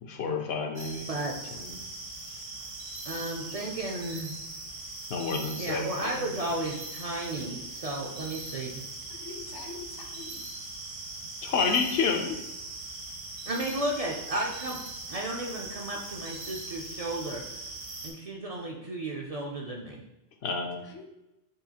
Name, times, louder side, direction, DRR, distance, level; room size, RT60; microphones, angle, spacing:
voice 1, 0.0-1.1 1.5-1.9 5.1-6.5 11.4-12.4 20.4-20.8, left 5 dB, 75° left, 4 dB, 0.8 m, -30 dB
sound 1, 0.8-18.1, right 2 dB, 65° right, 1.1 m, -41 dB
voice 2, 3.0-4.4 5.6-8.8 13.5-14.8 15.1-17.4 18.0-20.0, right 1 dB, 50° right, -1 dB, 0.4 m, -33 dB
voice 3, 9.1-10.4 20.8-21.1, left 5 dB, 35° left, 3 dB, 0.4 m, -44 dB
6.4 x 2.4 x 2.8 m, 0.93 s
omnidirectional pair, 1.1 m